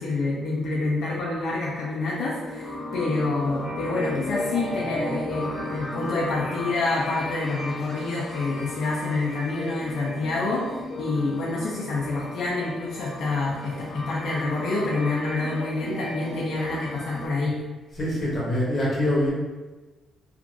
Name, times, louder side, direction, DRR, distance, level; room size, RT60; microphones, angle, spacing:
voice 1, 0.0-17.5, left 3 dB, 75° left, -5 dB, 0.5 m, -27 dB
sound 1, 1.9-17.3, left 1 dB, 20° left, 0.6 m, -35 dB
voice 2, 17.9-19.3, left 1 dB, 45° left, -5 dB, 0.9 m, -24 dB
2.9 x 2.5 x 2.6 m, 1.2 s
cardioid pair, 90°, 0 cm